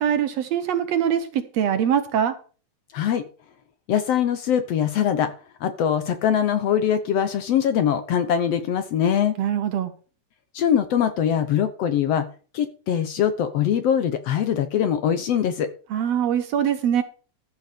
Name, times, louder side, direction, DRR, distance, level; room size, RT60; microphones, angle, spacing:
voice 1, 0.0-2.4 9.4-9.9 15.9-17.0, right 9 dB, 65° right, 1.9 m, -23 dB
voice 2, 2.9-3.2 3.9-5.3 5.6-9.4 10.5-12.3 12.5-15.7, left 9 dB, 65° left, 1.7 m, -22 dB
14.0 x 5.7 x 6.6 m
omnidirectional pair, 3.6 m